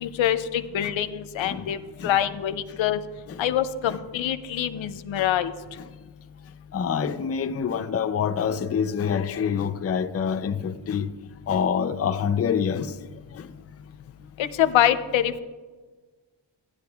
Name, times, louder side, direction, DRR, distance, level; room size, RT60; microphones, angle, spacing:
voice 1, 0.0-1.8 2.0-3.0 3.4-5.5 14.4-15.4, left 11 dB, 75° left, 0.6 m, -24 dB
voice 2, 6.7-11.1 11.5-13.0 13.3-13.5, left 7 dB, 30° left, 0.5 m, -26 dB
14.5 x 10.5 x 2.3 m
cardioid pair, 75°, 47 cm